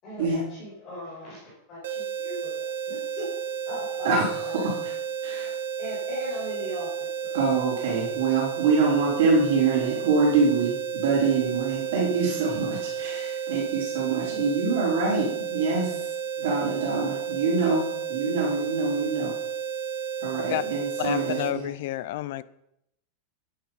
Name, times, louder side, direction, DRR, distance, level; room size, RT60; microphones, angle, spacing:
voice 1, 0.0-3.4 3.7-4.6 5.4-7.3, left 1 dB, 25° left, -6 dB, 5.6 m, -39 dB
sound 1, 1.8-21.6, right 8 dB, 80° right, 1.5 m, -32 dB
voice 2, 5.2-5.5 7.3-19.3 20.2-21.7, right 4 dB, 60° right, -8 dB, 4.3 m, -25 dB
voice 3, 21.0-22.4, left 14 dB, 50° left, 17 dB, 0.5 m, -30 dB
11.5 x 9.9 x 5.5 m, 0.78 s
supercardioid pair, 175°, 0 cm